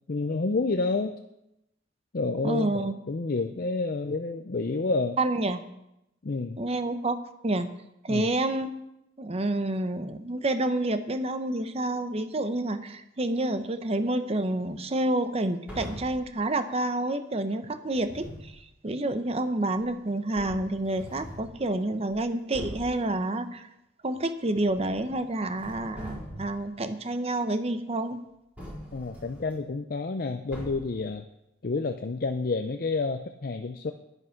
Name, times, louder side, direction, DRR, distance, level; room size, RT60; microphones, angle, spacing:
voice 1, 0.1-1.2 2.1-5.2 6.2-6.6 8.1-8.3 28.9-31.2 31.6-33.9, left 3 dB, 50° left, 6 dB, 0.5 m, -29 dB
voice 2, 2.4-2.9 5.2-5.6 6.6-7.2 7.4-7.7 8.0-8.7 9.2-23.7 24.0-28.2, right 2 dB, 35° right, 10 dB, 0.8 m, -28 dB
sound 1, 15.7-16.3 17.9-18.6 19.8-19.9 20.3-21.6 22.1-22.2 22.5-23.0 24.6-25.2 25.5-26.6 28.6-29.5 30.5-31.0, equal, 10° right, 4.3 m, -42 dB
10.0 x 9.6 x 5.8 m, 0.86 s
head